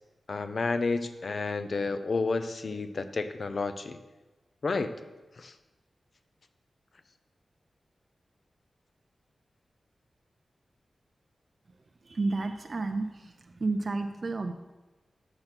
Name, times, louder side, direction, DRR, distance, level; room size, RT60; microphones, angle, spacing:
voice 1, 0.3-4.0 4.6-4.9 5.4-5.5, left 3 dB, 45° left, 10 dB, 0.5 m, -30 dB
voice 2, 12.0-14.5, right 3 dB, 40° right, 5 dB, 0.4 m, -31 dB
6.5 x 5.9 x 5.8 m, 1.2 s
wide cardioid pair, 165°, 0 cm